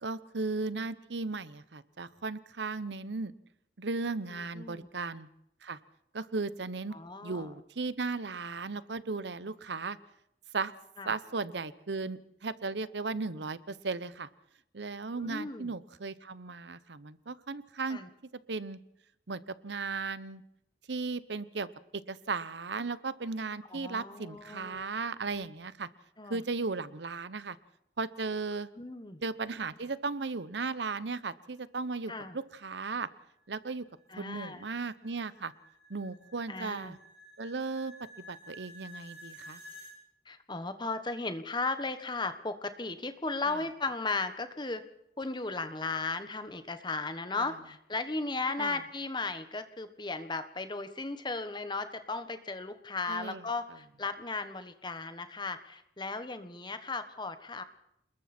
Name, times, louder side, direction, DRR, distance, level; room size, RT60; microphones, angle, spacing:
voice 1, 0.0-3.3 3.8-5.3 5.6-5.8 6.1-6.9 7.2-10.0 10.5-10.7 11.0-14.3 14.7-18.0 18.5-18.8 19.3-20.4 20.9-21.7 22.1-25.9 26.3-27.6 28.0-28.7 29.2-33.1 33.5-33.8 34.2-35.5 35.9-37.0 37.4-37.9 38.3-39.6 43.5-43.6 47.4-47.5 48.6-48.8 53.1-53.4, right 4 dB, 80° right, 16 dB, 0.9 m, -36 dB
voice 2, 4.5-4.9 6.9-7.5 11.0-11.1 15.1-15.7 17.8-18.1 23.7-24.9 26.2-26.4 28.8-29.2 32.1-32.4 34.1-34.6 36.5-37.0 40.3-44.8 45.2-57.6, left 3 dB, 25° left, 10 dB, 1.3 m, -36 dB
sound 1, 33.3-40.0, equal, 65° right, 6.0 m, -52 dB
28.0 x 21.0 x 4.4 m, 0.77 s
head